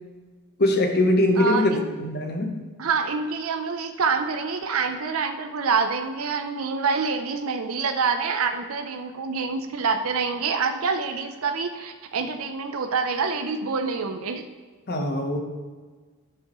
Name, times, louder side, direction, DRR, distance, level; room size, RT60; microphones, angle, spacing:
voice 1, 0.6-2.5 14.9-15.4, left 1 dB, 45° left, 4 dB, 1.0 m, -22 dB
voice 2, 1.4-1.9 2.8-14.4, right 5 dB, 70° right, 6 dB, 0.6 m, -26 dB
10.0 x 6.9 x 3.0 m, 1.4 s
head